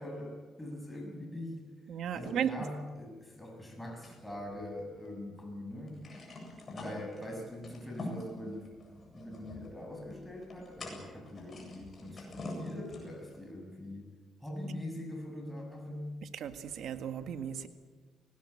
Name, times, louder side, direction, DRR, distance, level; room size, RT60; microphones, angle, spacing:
voice 1, 0.0-1.6 2.0-6.0 6.7-8.7 9.1-14.1 14.4-16.1, left 1 dB, 5° left, 1 dB, 6.4 m, -42 dB
voice 2, 1.9-2.5 16.3-17.7, right 9 dB, 75° right, 9 dB, 1.9 m, -35 dB
sound 1, 4.0-5.2 5.5-5.6 5.8-13.4, left 2 dB, 40° left, 8.0 m, -46 dB
22.5 x 19.0 x 8.8 m, 1.4 s
cardioid pair, 90°, 0 cm